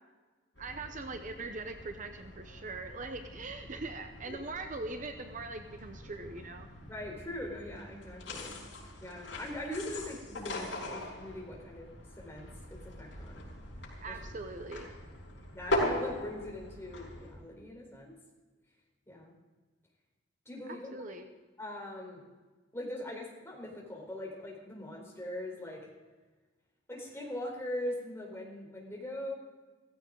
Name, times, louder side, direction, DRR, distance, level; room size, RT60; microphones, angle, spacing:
sound 1, 0.5-17.3, left 1 dB, 85° left, 5.4 m, -41 dB
voice 1, 0.6-6.7 14.0-14.9 20.7-21.3, right 3 dB, 45° right, 7 dB, 0.8 m, -41 dB
voice 2, 6.9-8.6 9.0-11.9 12.2-13.6 14.0-14.3 15.5-18.1 19.1-19.3 20.5-21.1 21.6-22.2 22.7-25.9 26.9-29.3, left 1 dB, 15° left, -1 dB, 4.1 m, -41 dB
16.5 x 15.5 x 3.9 m, 1.3 s
head